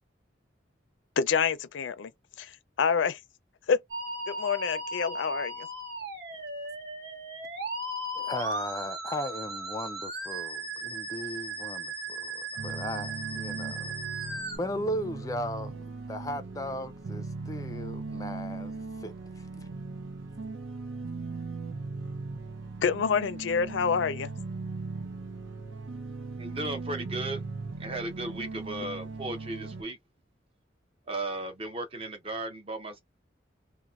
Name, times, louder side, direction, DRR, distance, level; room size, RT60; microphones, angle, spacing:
voice 1, 1.2-2.1 2.4-3.2 3.7-3.8 4.3-5.7 22.8-24.3, left 6 dB, 85° left, 0.4 m, -27 dB
Musical instrument, 3.9-14.6, right 2 dB, 60° right, 1.5 m, -36 dB
voice 2, 8.1-13.9 14.6-15.7 16.1-18.7 19.0-19.7, equal, 20° left, 0.3 m, -37 dB
sound 1, 12.6-29.8, right 3 dB, 90° right, 0.6 m, -38 dB
voice 3, 26.4-27.4 27.8-30.0 31.1-33.0, right 2 dB, 30° right, 0.7 m, -35 dB
2.9 x 2.1 x 2.4 m
head